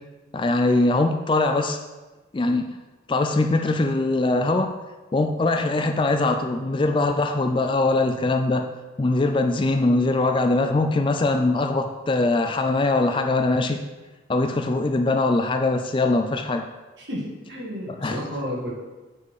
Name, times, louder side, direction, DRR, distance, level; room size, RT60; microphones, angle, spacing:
voice 1, 0.3-1.8 2.3-2.8 3.1-4.8 5.1-8.7 9.0-13.8 14.3-16.7 18.0-18.2, left 2 dB, 25° left, 6 dB, 0.3 m, -22 dB
voice 2, 17.0-18.7, equal, 65° right, -4 dB, 2.0 m, -32 dB
7.3 x 4.2 x 4.8 m, 1.2 s
head